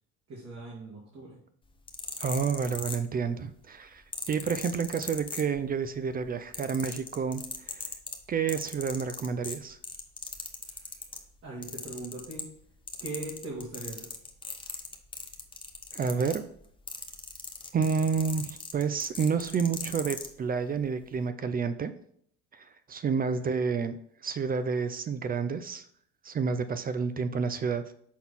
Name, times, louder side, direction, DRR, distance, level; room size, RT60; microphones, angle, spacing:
voice 1, 0.3-1.4 10.6-11.0 11.4-12.5 13.0-14.1 23.3-23.5, right 2 dB, 45° right, -4 dB, 2.2 m, -40 dB
sound 1, 1.7-3.4 4.1-5.9 6.2-11.2 11.6-12.6 12.9-20.3 21.0-21.2, left 4 dB, 15° left, 0.9 m, -39 dB
voice 2, 2.2-4.0 4.3-7.4 7.7-7.8 8.3-9.8 15.9-16.4 17.7-21.9 22.5-24.0 24.2-25.9 26.2-27.9, right 5 dB, 30° right, 11 dB, 0.5 m, -29 dB
6.2 x 3.9 x 5.5 m, 0.65 s
supercardioid pair, 80°, 32 cm